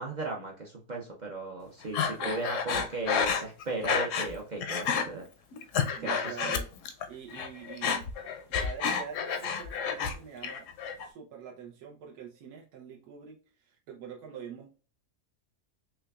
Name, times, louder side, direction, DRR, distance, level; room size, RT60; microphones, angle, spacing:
voice 1, 0.0-5.2 6.0-6.4, right 3 dB, 60° right, 0 dB, 0.4 m, -36 dB
Breathing, 1.9-4.3 4.6-5.1 5.5-7.1 7.3-10.1 10.4-11.1, left 6 dB, 70° left, 0.8 m, -30 dB
voice 2, 2.0-2.4 6.0-6.7 7.1-8.1 8.5-10.7 11.0-14.7, right 7 dB, 85° right, 0 dB, 1.2 m, -45 dB
5.7 x 2.2 x 2.3 m, 0.37 s
omnidirectional pair, 1.6 m